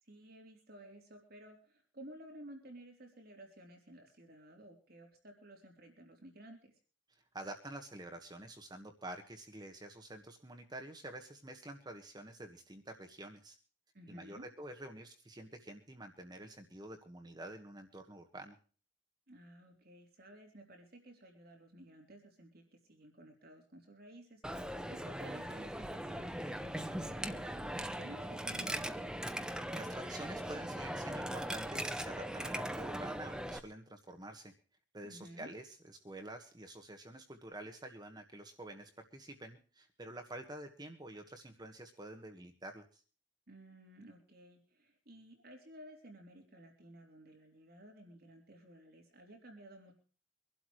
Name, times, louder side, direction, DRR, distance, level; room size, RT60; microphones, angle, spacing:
voice 1, 0.0-6.8 13.9-14.5 19.3-29.2 35.0-35.5 43.5-49.9, right 1 dB, 55° right, 2 dB, 3.5 m, -55 dB
voice 2, 7.3-13.6 14.1-18.6 29.5-34.5 34.9-43.0, right 1 dB, 20° right, 4 dB, 1.5 m, -48 dB
Coin (dropping), 24.4-33.6, right 1 dB, 5° right, 0.9 m, -40 dB
24.5 x 12.0 x 3.2 m, 0.39 s
head